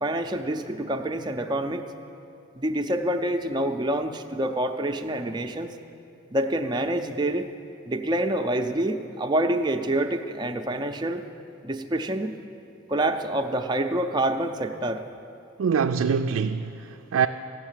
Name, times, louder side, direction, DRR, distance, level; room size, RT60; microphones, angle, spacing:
voice 1, 0.0-1.8 2.5-5.7 6.3-7.5 7.9-11.2 11.6-12.4 12.9-15.0, right 1 dB, 20° right, 0.5 m, -27 dB
voice 2, 15.6-17.3, right 6 dB, 85° right, 0.3 m, -24 dB
15.0 x 6.5 x 9.0 m
head